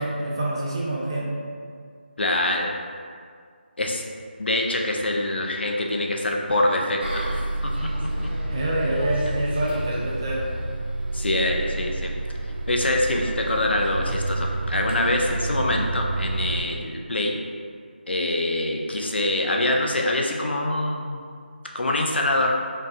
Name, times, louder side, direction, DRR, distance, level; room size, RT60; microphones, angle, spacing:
voice 1, 0.0-1.3 8.5-10.4, right 1 dB, 25° right, -4 dB, 0.5 m, -26 dB
voice 2, 2.2-2.7 3.8-4.0 4.4-7.2 7.6-7.9 8.2-8.3 11.1-12.1 12.7-17.3 18.1-21.2 21.7-22.5, left 1 dB, 75° left, 0 dB, 0.5 m, -24 dB
Bus, 7.0-16.6, right 2 dB, 80° right, 1.1 m, -29 dB
5.3 x 2.3 x 2.5 m, 2.1 s
figure-of-eight pair, 165°, 6 cm